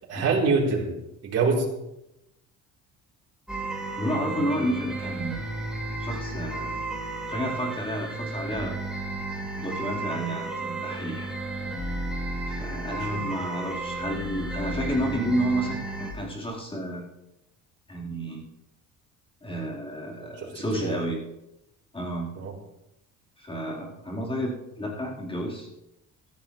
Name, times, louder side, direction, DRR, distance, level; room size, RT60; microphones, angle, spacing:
voice 1, 0.1-0.9 1.2-1.7 12.9-13.2 20.4-21.0 22.4-22.5, right 4 dB, 55° right, -4 dB, 4.3 m, -25 dB
sound 1, 3.5-16.1, right 2 dB, 5° right, 3.2 m, -33 dB
voice 2, 4.0-5.4 6.0-6.7 7.3-8.8 9.6-11.3 12.5-17.1 17.9-18.4 19.4-21.2 21.9-22.3 23.4-24.5 24.8-25.7, equal, 15° left, -4 dB, 4.8 m, -31 dB
16.5 x 14.5 x 3.4 m, 0.90 s
cardioid pair, 125°, 30 cm